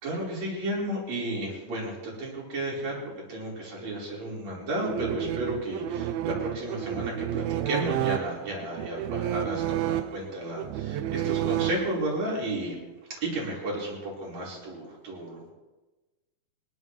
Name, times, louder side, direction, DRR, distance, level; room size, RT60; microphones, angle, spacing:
voice 1, 0.0-12.8 13.1-15.5, right 1 dB, 45° right, -4 dB, 5.3 m, -33 dB
sound 1, 4.8-12.2, right 12 dB, 80° right, 2.3 m, -31 dB
24.5 x 13.0 x 3.1 m, 1.1 s
omnidirectional pair, 4.4 m